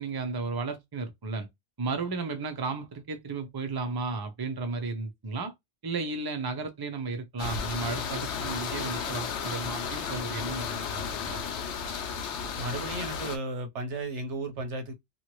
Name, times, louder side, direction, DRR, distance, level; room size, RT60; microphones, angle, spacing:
voice 1, 0.0-1.5 1.8-5.5 5.8-11.4, right 3 dB, 25° right, 0.5 m, -34 dB
sound 1, 7.4-13.4, left 6 dB, 85° left, 0.9 m, -33 dB
voice 2, 12.6-14.9, right 2 dB, 85° right, 1.2 m, -34 dB
2.9 x 2.4 x 3.0 m
omnidirectional pair, 1.2 m